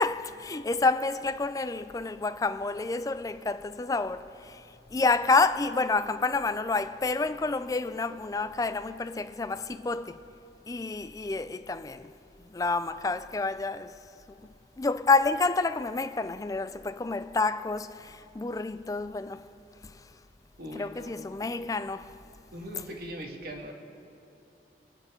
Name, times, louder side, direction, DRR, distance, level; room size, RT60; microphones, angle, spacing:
voice 1, 0.0-4.6 4.9-10.2 10.7-12.1 12.5-13.9 14.8-19.5 20.7-22.2, left 3 dB, 20° left, 0.4 m, -29 dB
voice 2, 20.6-21.2 22.5-23.7, equal, 55° right, 1.8 m, -40 dB
26.5 x 9.8 x 3.8 m
head